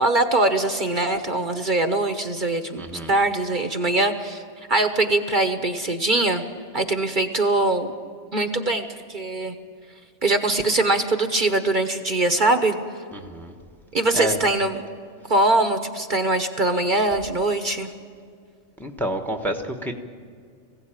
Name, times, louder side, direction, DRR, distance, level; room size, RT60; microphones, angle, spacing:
voice 1, 0.0-2.8 3.1-4.4 4.7-6.4 6.7-7.9 8.3-9.5 10.2-12.7 13.9-14.8 15.3-17.9, right 2 dB, 45° right, 7 dB, 1.1 m, -22 dB
voice 2, 2.8-3.1 13.1-13.5 14.1-14.4 18.8-19.9, right 1 dB, ahead, 5 dB, 1.1 m, -28 dB
21.5 x 16.0 x 8.9 m, 2.1 s
omnidirectional pair, 1.2 m